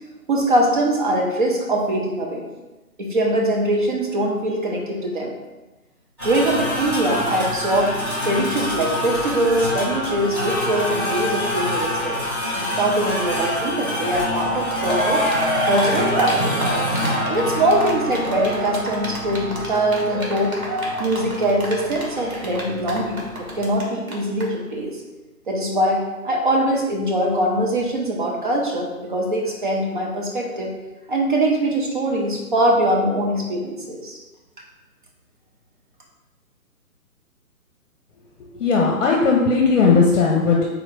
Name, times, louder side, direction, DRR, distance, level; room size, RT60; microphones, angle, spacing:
voice 1, 0.3-2.5 3.0-5.3 6.2-7.9 8.2-12.2 12.6-15.3 15.6-16.6 17.3-20.6 21.0-24.9 25.5-30.7 31.1-34.2, right 1 dB, 35° right, -1 dB, 0.7 m, -22 dB
sound 1, 6.2-23.8, left 1 dB, 15° right, 1.4 m, -27 dB
Cheering, 14.4-14.5 14.7-23.8 24.1-24.2 24.4-24.5, equal, 70° right, 1.5 m, -26 dB
voice 2, 38.5-40.6, left 4 dB, 55° left, -1 dB, 0.8 m, -17 dB
3.9 x 2.9 x 4.5 m, 1.1 s
hypercardioid pair, 155°, 44 cm